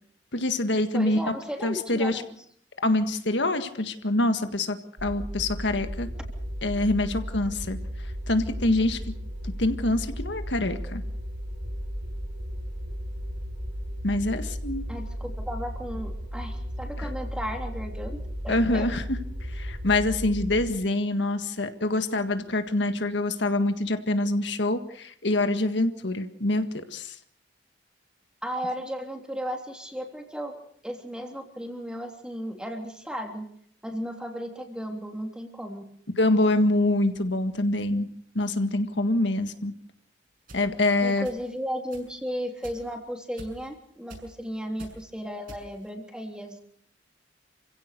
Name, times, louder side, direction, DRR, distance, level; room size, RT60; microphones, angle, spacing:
voice 1, 0.3-1.2 1.6-2.2 2.8-6.1 6.6-7.8 8.3-9.0 9.4-11.0 14.0-14.8 17.0-17.1 18.5-19.2 19.5-27.2 36.2-38.1 38.4-39.7 40.5-41.3, left 2 dB, 75° left, 8 dB, 1.8 m, -25 dB
voice 2, 0.9-2.3 14.9-19.0 28.4-30.5 30.8-33.5 33.8-35.8 41.0-46.6, equal, 5° right, 3 dB, 3.2 m, -35 dB
sound 1, 5.0-20.7, equal, 80° right, 3.5 m, -35 dB
sound 2, 40.5-40.6 41.2-41.6 41.9-42.1 42.6-42.9 43.4-43.7 44.1-44.4 44.8-45.0 45.5-45.9, right 1 dB, 50° right, 6.8 m, -45 dB
27.5 x 16.5 x 6.8 m, 0.63 s
head